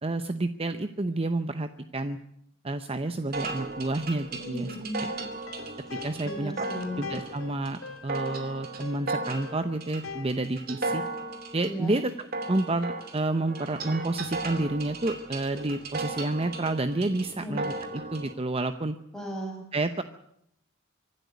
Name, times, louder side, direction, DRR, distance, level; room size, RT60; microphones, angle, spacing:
voice 1, 0.0-2.2 2.6-4.8 5.9-6.5 7.0-11.0 11.5-12.1 12.5-19.0 19.7-20.0, right 2 dB, 30° right, 10 dB, 0.7 m, -29 dB
sound 1, 3.3-18.3, right 3 dB, 45° right, 2.7 m, -36 dB
voice 2, 4.4-5.2 6.2-7.0 11.6-12.0 17.3-17.6 19.1-19.6, equal, ahead, 0 dB, 6.1 m, -36 dB
sound 2, 5.3-10.9, left 3 dB, 80° left, 2.5 m, -43 dB
25.0 x 12.0 x 9.5 m, 0.74 s
head